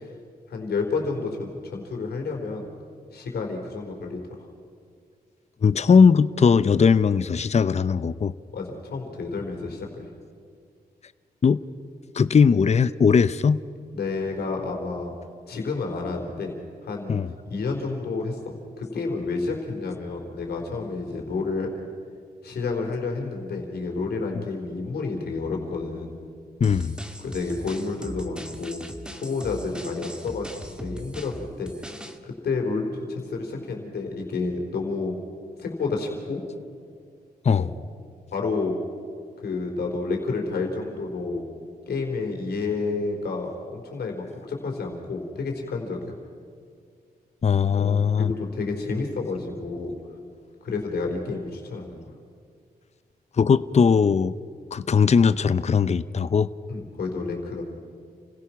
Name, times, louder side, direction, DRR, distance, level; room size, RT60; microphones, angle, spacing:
voice 1, 0.5-2.7 3.1-4.2 8.5-10.1 13.9-15.1 15.5-16.5 16.8-17.2 17.5-21.7 22.4-26.1 27.2-28.8 29.1-30.5 30.8-31.7 32.2-35.2 35.6-36.4 37.6-37.7 38.3-38.8 39.4-41.4 41.9-46.1 47.8-49.9 50.6-52.0 56.7-57.6, left 4 dB, 85° left, 1 dB, 4.1 m, -30 dB
voice 2, 5.6-8.3 11.4-11.6 12.1-13.6 17.1-17.3 26.6-27.0 37.4-37.7 47.4-48.3 53.4-54.3 54.7-56.5, left 6 dB, 45° left, 15 dB, 0.6 m, -19 dB
sound 1, 26.6-32.2, equal, 5° right, 1.7 m, -39 dB
29.5 x 16.5 x 5.9 m, 2.2 s
cardioid pair, 60°, 16 cm